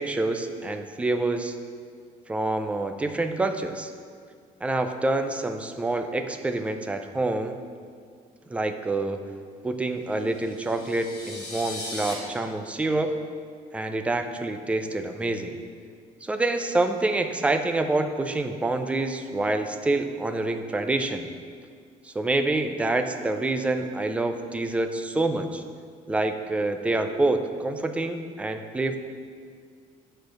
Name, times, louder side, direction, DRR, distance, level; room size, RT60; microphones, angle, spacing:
voice 1, 0.0-1.6 2.3-3.9 4.6-7.6 8.5-9.2 9.6-13.1 13.7-15.6 16.2-21.3 22.0-25.6 26.1-29.0, right 2 dB, 10° right, 7 dB, 0.4 m, -27 dB
sound 1, 10.2-12.1, left 1 dB, 25° left, 1.3 m, -38 dB
9.3 x 4.4 x 6.3 m, 2.1 s
cardioid pair, 175°, 15 cm